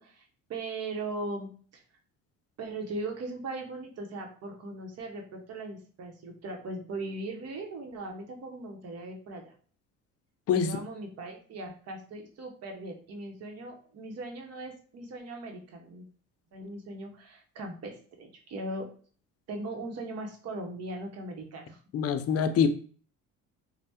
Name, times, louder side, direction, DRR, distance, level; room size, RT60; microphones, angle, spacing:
voice 1, 0.0-1.8 2.6-9.5 10.6-16.1 16.5-18.9 19.5-21.8, right 2 dB, 50° right, 0.8 m, -39 dB
voice 2, 21.9-22.7, left 7 dB, 50° left, 0.4 m, -25 dB
3.2 x 2.1 x 2.8 m
cardioid pair, 95°, 32 cm